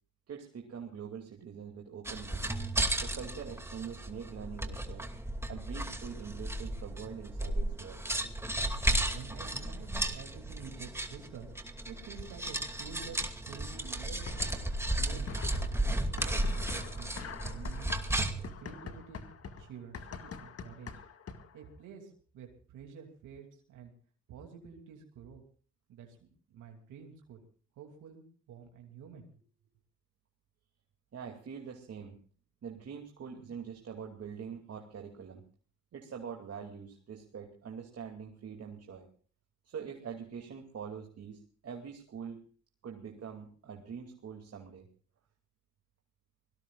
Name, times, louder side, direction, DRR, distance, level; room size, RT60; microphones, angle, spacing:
voice 1, 0.3-2.6 3.0-5.1 5.5-8.0 31.1-32.2 32.6-35.4 35.9-39.1 39.6-42.4 42.8-44.9, right 7 dB, 55° right, 2 dB, 2.7 m, -44 dB
sound 1, 2.0-18.5, right 1 dB, 10° right, 2.5 m, -34 dB
voice 2, 8.8-11.5 11.9-14.6 14.9-15.3 15.8-16.4 16.7-18.0 18.6-21.0 21.5-23.9 24.3-25.4 25.9-27.4 27.8-29.3, right 7 dB, 85° right, 2 dB, 2.9 m, -49 dB
sound 2, 14.3-14.9 15.2-21.6, left 5 dB, 50° left, 1.9 m, -44 dB
24.5 x 18.0 x 2.5 m, 0.42 s
cardioid pair, 90°, 30 cm